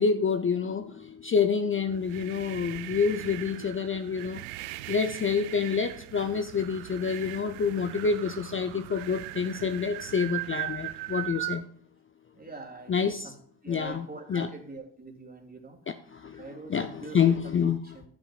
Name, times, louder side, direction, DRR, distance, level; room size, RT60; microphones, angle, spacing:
voice 1, 0.0-11.6 12.9-13.3 13.7-14.5 15.9-17.8, left 6 dB, 25° left, 0.6 m, -28 dB
sound 1, 1.8-11.6, right 17 dB, 80° right, 0.6 m, -39 dB
voice 2, 12.3-12.9 13.2-13.3 13.6-15.8 16.3-17.6 17.9-18.0, right 3 dB, 20° right, 2.8 m, -43 dB
12.0 x 8.9 x 2.4 m
hypercardioid pair, 50°, 48 cm